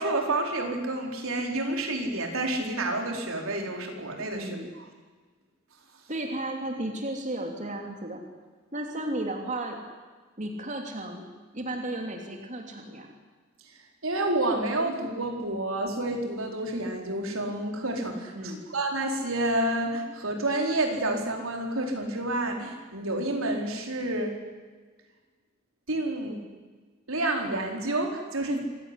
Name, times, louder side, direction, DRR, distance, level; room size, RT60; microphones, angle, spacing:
voice 1, 0.0-4.8 14.0-24.4 25.9-26.4 27.1-28.6, right 1 dB, 85° right, 2 dB, 4.5 m, -29 dB
voice 2, 4.3-4.7 6.1-8.2 8.7-9.8 10.4-11.2 11.5-13.1 18.3-18.6, right 1 dB, 35° right, 2 dB, 3.2 m, -34 dB
26.5 x 17.0 x 10.0 m, 1.4 s
head